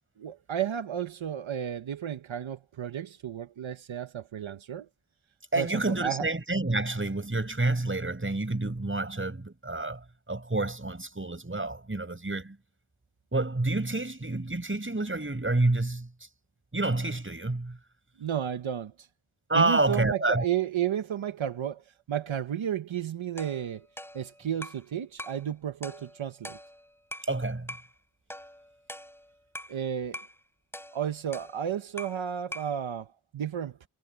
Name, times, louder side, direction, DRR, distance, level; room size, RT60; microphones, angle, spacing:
voice 1, 0.2-4.9 5.6-6.2 18.2-19.1 19.5-23.9 24.1-26.6 29.7-30.2 30.9-33.9, right 9 dB, 85° right, 1.1 m, -32 dB
voice 2, 5.5-12.6 13.3-16.1 16.7-17.8 19.5-20.5 27.3-27.8, right 2 dB, 25° right, 7.7 m, -28 dB
sound 1, 23.4-24.9 25.2-25.5 25.8-27.3 27.7-27.9 28.3-29.8 30.1-30.4 30.7-32.3 32.5-32.8, equal, 5° left, 7.9 m, -43 dB
wide cardioid pair, 70°, 46 cm